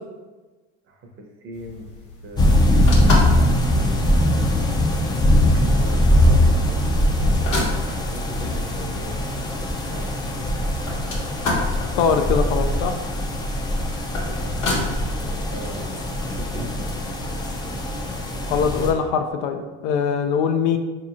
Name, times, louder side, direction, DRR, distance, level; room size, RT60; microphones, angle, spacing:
voice 1, 0.9-1.9 2.2-2.6 2.9-3.6 5.2-7.5 7.8-9.1 9.6-10.5 14.1-16.0 16.3-16.9, right 2 dB, 40° right, 2 dB, 0.7 m, -39 dB
sound 1, 1.5-16.9, left 2 dB, 60° left, 1.1 m, -31 dB
sound 2, 2.4-18.9, left 1 dB, 15° left, 0.3 m, -21 dB
voice 2, 12.0-12.9 18.5-20.8, left 6 dB, 85° left, 6 dB, 0.5 m, -22 dB
4.0 x 2.9 x 2.4 m, 1.2 s
supercardioid pair, 105°, 33 cm